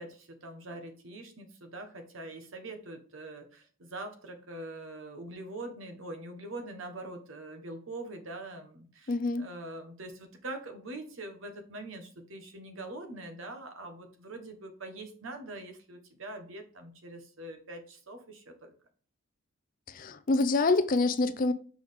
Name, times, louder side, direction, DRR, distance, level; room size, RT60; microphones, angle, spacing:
voice 1, 0.0-18.7, right 2 dB, 65° right, 1.2 m, -43 dB
voice 2, 9.1-9.4 19.9-21.5, left 3 dB, 40° left, 0.4 m, -26 dB
6.2 x 4.6 x 3.5 m
head